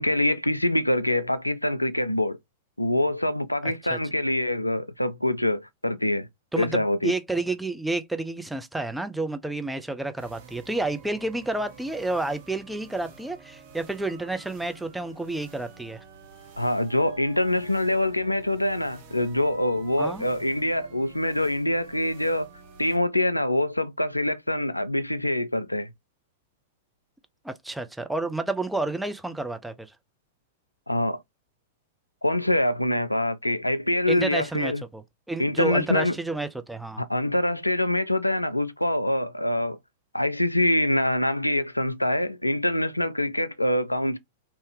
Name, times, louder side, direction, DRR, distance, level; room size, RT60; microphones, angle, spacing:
voice 1, 0.0-2.4 2.8-6.3 6.6-7.1 16.6-22.5 22.8-25.9 30.9-31.2 32.2-34.8 35.4-36.1 37.0-39.8 40.1-44.2, left 1 dB, 90° left, 0.3 m, -25 dB
voice 2, 6.5-16.0 20.0-20.3 27.4-29.9 34.1-35.0 35.3-37.0, right 2 dB, 5° right, 0.5 m, -30 dB
sound 1, 10.2-23.0, right 4 dB, 50° right, 1.1 m, -49 dB
3.4 x 2.8 x 3.2 m
figure-of-eight pair, 100°, 0 cm